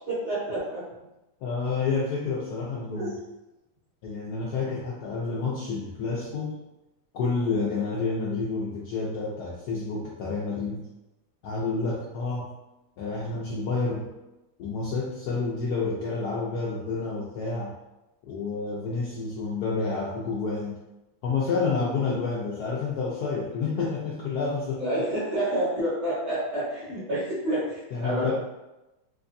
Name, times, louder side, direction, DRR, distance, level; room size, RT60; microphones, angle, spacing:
voice 1, 0.1-0.8 2.9-3.1 24.8-28.3, right 1 dB, 40° right, -8 dB, 1.2 m, -28 dB
voice 2, 1.4-3.1 4.0-6.6 7.1-10.9 11.4-12.5 13.0-14.1 14.6-17.7 18.3-20.7 21.2-24.9 27.9-28.3, left 4 dB, 70° left, -4 dB, 0.9 m, -29 dB
3.4 x 3.1 x 2.6 m, 0.98 s
omnidirectional pair, 2.2 m